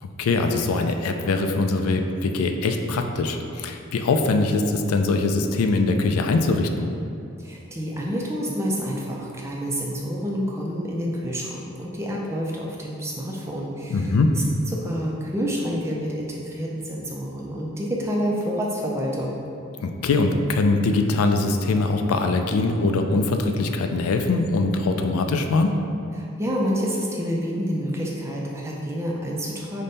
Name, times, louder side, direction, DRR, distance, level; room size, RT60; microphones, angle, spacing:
voice 1, 0.0-6.9 13.9-14.3 19.8-25.8, left 3 dB, 85° left, 5 dB, 0.3 m, -22 dB
voice 2, 7.4-14.1 14.7-19.4 26.2-29.8, equal, 10° right, -3 dB, 0.4 m, -28 dB
5.2 x 2.1 x 4.0 m, 2.6 s
head